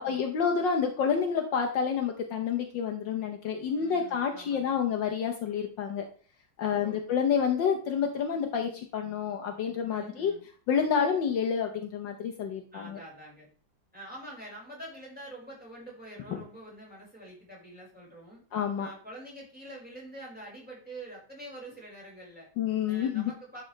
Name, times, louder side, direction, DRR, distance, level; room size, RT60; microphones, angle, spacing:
voice 1, 0.0-6.0 6.6-10.3 10.7-13.0 16.3-16.4 18.5-18.9 22.6-23.3, left 7 dB, 65° left, 3 dB, 1.5 m, -29 dB
voice 2, 3.8-4.8 6.6-7.1 9.9-10.4 12.7-13.5 13.9-18.4 18.8-22.5 22.9-23.6, right 1 dB, 5° right, -5 dB, 4.7 m, -46 dB
11.0 x 5.1 x 3.2 m, 0.43 s
omnidirectional pair, 2.2 m